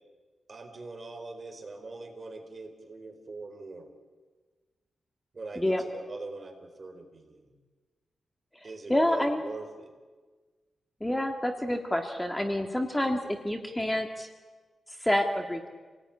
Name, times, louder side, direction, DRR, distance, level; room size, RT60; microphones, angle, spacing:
voice 1, 0.5-3.9 5.3-7.5 8.6-9.9, right 3 dB, 35° right, 5 dB, 4.2 m, -42 dB
voice 2, 8.9-9.4 11.0-14.3 15.0-15.7, left 1 dB, 10° left, 4 dB, 1.8 m, -28 dB
28.0 x 18.5 x 9.6 m, 1.4 s
wide cardioid pair, 125°, 0 cm